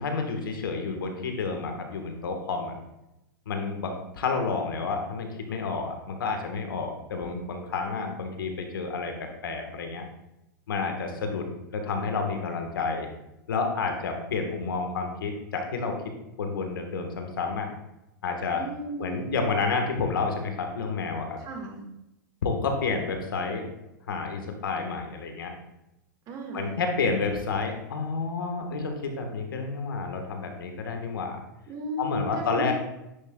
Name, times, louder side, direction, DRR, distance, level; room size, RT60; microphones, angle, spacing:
voice 1, 0.0-2.8 3.5-9.1 9.4-10.0 10.7-11.4 11.7-13.1 13.5-16.0 16.4-17.7 18.2-18.6 19.0-21.3 22.4-23.6 24.1-25.5 26.5-31.4 32.0-32.7, left 4 dB, 80° left, 4 dB, 1.3 m, -30 dB
voice 2, 18.5-19.3 21.4-21.8 26.3-26.8 31.7-32.7, right 1 dB, 35° right, 2 dB, 1.7 m, -35 dB
9.9 x 5.6 x 2.3 m, 0.90 s
hypercardioid pair, 110°, 11 cm